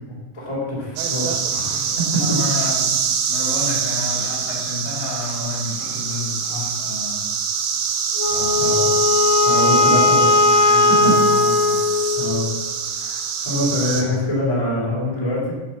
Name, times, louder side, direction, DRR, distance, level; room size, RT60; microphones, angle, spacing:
voice 1, 0.3-2.7 8.6-8.9 9.4-11.1 12.1-12.5 13.0-15.5, equal, 10° left, -6 dB, 1.8 m, -24 dB
sound 1, 1.0-14.0, right 6 dB, 70° right, 2.9 m, -24 dB
voice 2, 2.1-2.9 3.3-7.3 8.3-8.8 9.5-9.7 10.4-11.8, left 3 dB, 55° left, -5 dB, 5.3 m, -30 dB
Wind instrument woodwind instrument, 8.2-12.6, left 3 dB, 80° left, 3.8 m, -17 dB
10.5 x 5.5 x 7.2 m, 1.4 s
omnidirectional pair, 5.8 m